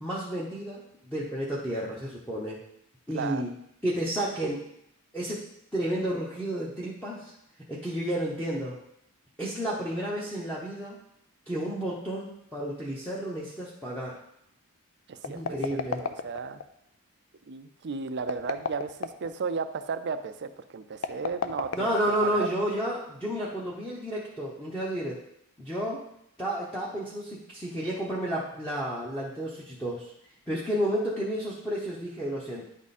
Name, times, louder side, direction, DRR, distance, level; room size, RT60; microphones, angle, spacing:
voice 1, 0.0-2.6 3.1-3.5 3.8-4.6 5.1-5.4 5.7-7.3 7.7-8.8 9.4-11.0 11.5-14.2 15.2-16.0 21.7-25.2 25.6-26.0 26.4-30.1 30.5-32.7, right 1 dB, 5° left, -7 dB, 0.9 m, -31 dB
voice 2, 15.1-16.6 17.5-22.0 22.2-22.5, right 5 dB, 50° right, 9 dB, 0.5 m, -34 dB
sound 1, 15.2-16.7 18.2-19.3 20.9-22.5, left 5 dB, 65° left, 0.5 m, -33 dB
9.8 x 3.6 x 4.2 m, 0.76 s
head